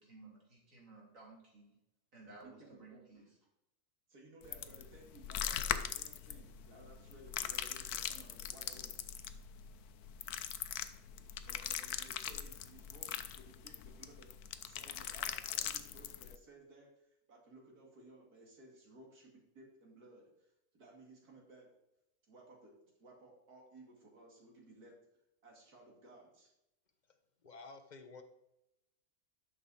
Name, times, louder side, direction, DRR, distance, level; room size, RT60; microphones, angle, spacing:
voice 1, 0.0-1.8 2.1-3.2, right 3 dB, 60° right, -3 dB, 3.4 m, -57 dB
voice 2, 2.4-3.3 4.1-9.1 11.4-21.7 22.3-22.7 23.0-24.9 25.4-26.5, right 2 dB, 90° right, -1 dB, 2.9 m, -58 dB
sound 1, 4.4-16.4, left 10 dB, 80° left, 1.2 m, -41 dB
voice 3, 27.4-28.2, left 3 dB, 35° left, 7 dB, 0.9 m, -51 dB
12.0 x 6.5 x 4.1 m, 0.87 s
omnidirectional pair, 1.6 m